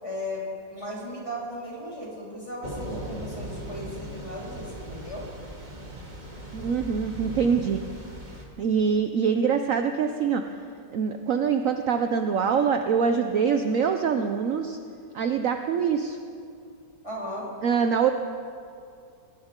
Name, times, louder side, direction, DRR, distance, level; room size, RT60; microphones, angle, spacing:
voice 1, 0.0-5.2 17.0-17.5, left 1 dB, 15° left, -6 dB, 4.2 m, -36 dB
Thunder / Rain, 2.6-8.4, equal, 25° right, 2.1 m, -38 dB
voice 2, 6.5-7.8 8.6-10.4 10.9-14.8 15.1-16.2 17.6-18.1, right 6 dB, 60° right, 6 dB, 0.9 m, -24 dB
21.0 x 17.0 x 3.7 m, 2.4 s
omnidirectional pair, 1.9 m